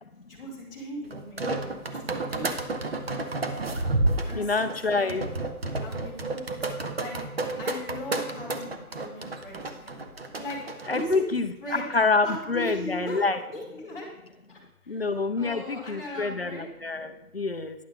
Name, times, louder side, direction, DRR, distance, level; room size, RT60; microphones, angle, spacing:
voice 1, 0.3-2.9 4.1-5.2 5.8-6.4 7.0-7.1 7.6-10.1 10.4-11.9 12.2-14.1 14.5-15.0 15.4-16.7, left 1 dB, ahead, -15 dB, 1.3 m, -39 dB
sound 1, 1.1-11.2, right 2 dB, 40° right, 0.6 m, -31 dB
voice 2, 4.3-5.3 10.9-13.4 14.9-17.7, left 3 dB, 45° left, 8 dB, 0.4 m, -27 dB
10.0 x 6.7 x 3.5 m, 0.88 s
hypercardioid pair, 170°, 45 cm